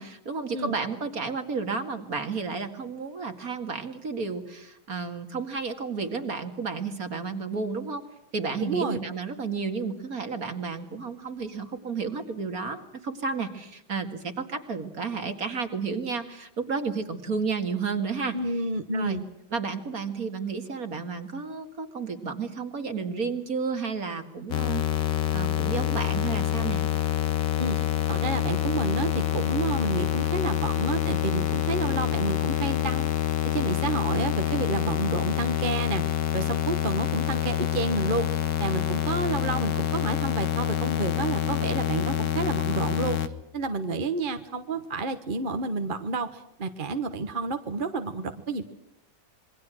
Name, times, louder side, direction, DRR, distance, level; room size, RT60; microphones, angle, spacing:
voice 1, 0.0-8.0 8.3-18.4 18.9-19.2 19.5-26.8, right 5 dB, 45° right, 7 dB, 2.5 m, -32 dB
voice 2, 8.6-9.0 18.3-19.2 27.6-33.1 33.4-48.7, right 3 dB, 30° right, 7 dB, 1.1 m, -30 dB
sound 1, 24.5-43.3, left 11 dB, 65° left, 1.8 m, -27 dB
27.0 x 22.5 x 6.3 m, 0.81 s
omnidirectional pair, 2.1 m